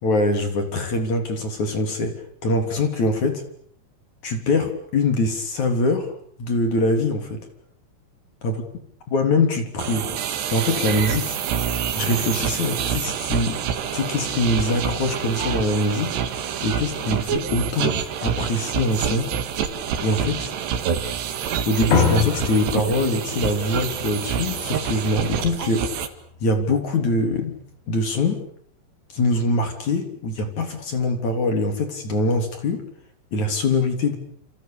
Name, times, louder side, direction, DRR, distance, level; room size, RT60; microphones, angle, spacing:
voice 1, 0.0-2.1 2.4-3.4 4.2-6.1 6.4-7.4 8.4-8.6 9.1-10.1 10.5-11.4 11.9-13.6 13.9-16.1 16.6-19.3 20.0-20.5 21.7-26.0 26.4-27.6 27.9-28.4 29.1-32.9 33.3-34.2, left 2 dB, 40° left, 6 dB, 4.2 m, -23 dB
sound 1, 9.8-26.1, right 8 dB, 65° right, 4.1 m, -27 dB
sound 2, 21.9-26.6, left 5 dB, 75° left, 7.4 m, -27 dB
29.5 x 28.0 x 7.0 m, 0.64 s
omnidirectional pair, 5.6 m